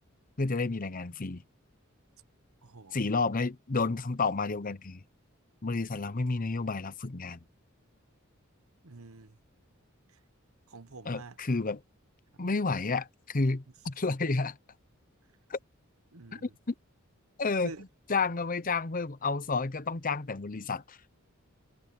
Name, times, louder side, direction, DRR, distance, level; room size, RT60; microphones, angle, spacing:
voice 1, 0.4-1.4 2.9-5.0 5.6-7.4 11.1-11.8 12.4-14.6 15.5-15.6 16.3-16.7 17.4-17.7 18.1-21.0, left 3 dB, 40° left, 0.8 m, -30 dB
voice 2, 2.6-3.0 8.8-9.4 10.1-10.2 10.7-11.4 12.3-12.4 16.1-16.4 17.6-17.8, right 2 dB, 80° right, 1.2 m, -47 dB
head